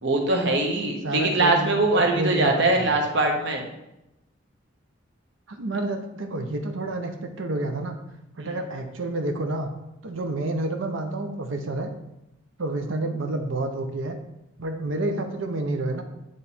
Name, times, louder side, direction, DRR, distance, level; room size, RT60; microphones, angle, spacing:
voice 1, 0.0-3.6 8.4-8.6, right 2 dB, 65° right, 2 dB, 1.1 m, -22 dB
voice 2, 1.0-2.9 5.5-8.0 8.4-9.7 10.0-11.9 12.6-14.2 14.6-16.0, right 2 dB, 90° right, 5 dB, 0.7 m, -29 dB
9.0 x 3.2 x 4.2 m, 0.90 s
head